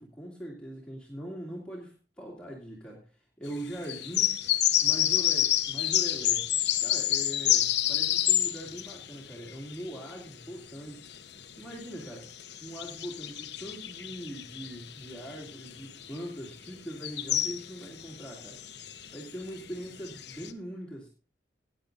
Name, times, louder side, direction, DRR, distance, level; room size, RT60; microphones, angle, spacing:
voice 1, 0.0-4.4 4.8-6.5 6.8-11.0 11.6-12.3 12.6-18.6 19.1-21.1, equal, 5° left, -4 dB, 2.5 m, -41 dB
sound 1, 3.7-10.3 10.7-20.5, left 12 dB, 70° left, 1.0 m, -29 dB
18.5 x 10.0 x 2.6 m, 0.35 s
head